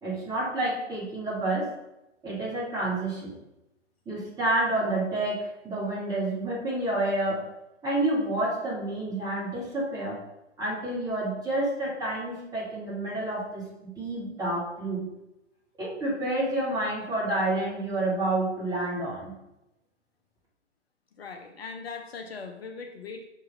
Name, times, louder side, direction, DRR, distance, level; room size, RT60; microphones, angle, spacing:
voice 1, 0.0-1.7 2.2-3.3 4.1-7.5 7.8-10.2 10.6-15.1 15.8-19.3, right 1 dB, 10° right, -6 dB, 1.7 m, -29 dB
voice 2, 21.2-23.2, left 4 dB, 55° left, 4 dB, 0.7 m, -40 dB
6.5 x 3.8 x 4.0 m, 0.91 s
figure-of-eight pair, 120°, 37 cm